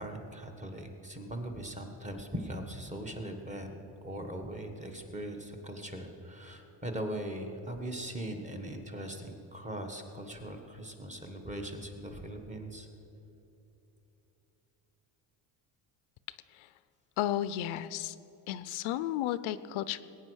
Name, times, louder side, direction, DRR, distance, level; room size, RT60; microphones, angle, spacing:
voice 1, 0.0-12.9, right 1 dB, 15° right, 3 dB, 1.4 m, -40 dB
voice 2, 17.2-18.2 18.5-20.0, left 12 dB, 80° left, 15 dB, 0.6 m, -33 dB
20.5 x 9.0 x 6.3 m, 2.9 s
cardioid pair, 150°, 48 cm